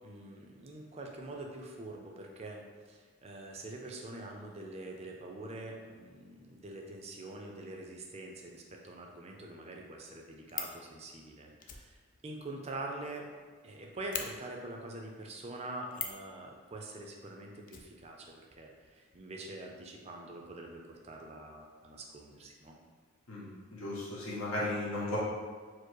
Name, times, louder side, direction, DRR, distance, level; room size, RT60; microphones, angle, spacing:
voice 1, 0.0-12.0 12.2-13.3 13.6-22.8, right 2 dB, 30° right, 1 dB, 0.5 m, -45 dB
Fire, 10.5-10.8 11.6-13.4 13.7-13.8 14.1-14.3 15.9-16.3 17.7-18.6 18.8-18.9 19.1-19.2, left 7 dB, 40° left, 0.4 m, -41 dB
voice 2, 23.3-25.2, left 1 dB, 85° left, -7 dB, 1.3 m, -36 dB
4.6 x 2.1 x 4.6 m, 1.5 s
head